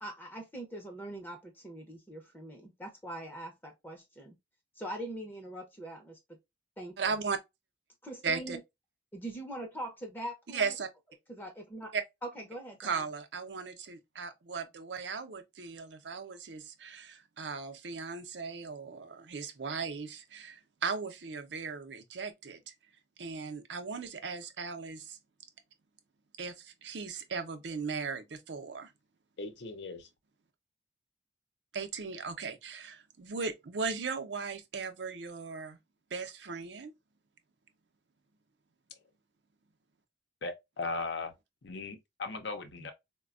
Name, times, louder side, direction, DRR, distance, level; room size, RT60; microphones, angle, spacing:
voice 1, 0.0-4.4 4.8-6.2 6.8-7.0 8.0-8.6 9.1-10.7 11.3-11.9 12.2-13.0, right 1 dB, 10° left, 0.6 m, -42 dB
voice 2, 7.0-7.4 8.2-8.6 10.5-10.9 11.9-12.0 12.8-22.7 23.2-25.2 26.4-28.9 31.7-35.8 36.1-36.9, right 5 dB, 75° right, 0.6 m, -37 dB
voice 3, 29.4-30.1 40.4-41.3 41.6-42.9, left 3 dB, 75° left, 0.7 m, -38 dB
4.1 x 2.2 x 2.4 m
head